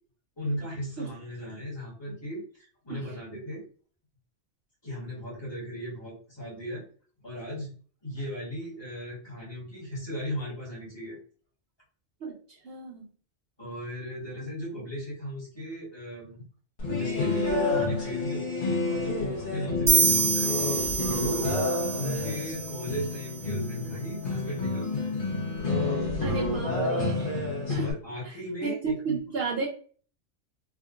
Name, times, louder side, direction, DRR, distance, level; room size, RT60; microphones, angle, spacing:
voice 1, 0.4-3.6 4.8-6.8 7.2-7.7 8.0-11.2 13.6-16.4 16.9-20.7 21.1-21.5 21.9-25.1 27.8-29.2, equal, 20° left, -5 dB, 1.4 m, -36 dB
voice 2, 12.6-13.1 14.4-14.5 26.2-27.4 27.7-27.9 28.6-29.7, right 5 dB, 60° right, -2 dB, 0.8 m, -33 dB
sound 1, 16.8-27.9, left 3 dB, 45° left, 1.0 m, -29 dB
sound 2, 19.9-23.5, right 5 dB, 90° right, 1.2 m, -27 dB
3.6 x 2.5 x 2.4 m, 0.43 s
omnidirectional pair, 1.3 m